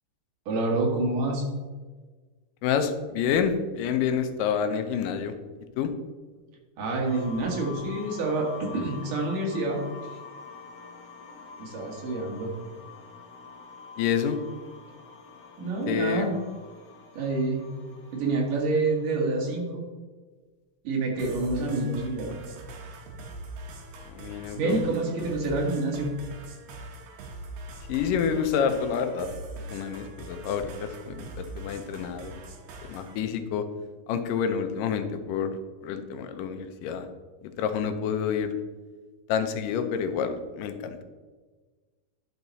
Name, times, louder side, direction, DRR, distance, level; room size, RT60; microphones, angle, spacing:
voice 1, 0.5-1.4 6.8-9.8 11.6-12.5 15.6-16.3 17.1-17.6 18.1-19.8 20.8-22.4 24.5-26.1, right 2 dB, 70° right, -1 dB, 3.3 m, -27 dB
voice 2, 2.6-5.3 5.8-5.9 14.0-14.4 15.9-16.3 24.1-24.8 27.9-29.3 29.6-32.4 32.8-33.7 34.1-35.5 35.8-37.1 37.4-38.6 39.3-41.0, left 7 dB, 80° left, 8 dB, 2.3 m, -28 dB
sound 1, 7.0-19.6, left 5 dB, 65° left, 1.1 m, -46 dB
sound 2, 21.2-33.2, right 2 dB, 90° right, 2.9 m, -42 dB
10.5 x 5.8 x 4.1 m, 1.4 s
omnidirectional pair, 3.9 m